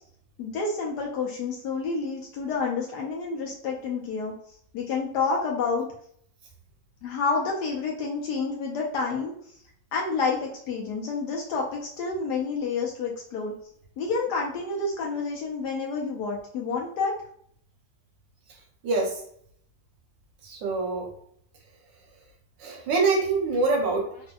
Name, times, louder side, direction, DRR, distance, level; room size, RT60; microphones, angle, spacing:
voice 1, 0.4-4.3 4.7-5.9 7.0-9.3 9.9-13.5 14.0-17.1, left 4 dB, 70° left, -1 dB, 1.0 m, -29 dB
voice 2, 18.8-19.2 20.4-21.1 22.6-24.1, right 3 dB, 70° right, 1 dB, 1.4 m, -25 dB
3.3 x 2.6 x 2.2 m, 0.63 s
omnidirectional pair, 2.1 m